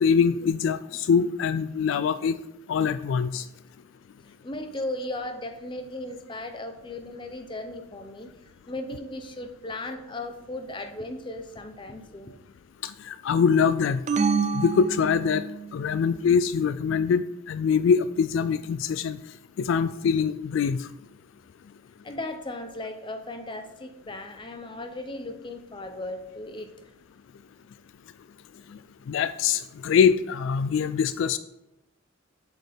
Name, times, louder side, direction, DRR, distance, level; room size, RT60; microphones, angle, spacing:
voice 1, 0.0-2.3 2.7-3.4 12.8-14.0 14.5-15.4 15.7-19.2 19.6-20.8 29.1-31.4, left 6 dB, 70° left, 13 dB, 0.3 m, -23 dB
voice 2, 4.4-8.3 8.7-12.4 22.0-26.9, left 2 dB, 25° left, 6 dB, 0.7 m, -36 dB
sound 1, 14.1-15.7, right 5 dB, 35° right, 0.3 m, -27 dB
7.6 x 6.2 x 3.5 m, 0.86 s
head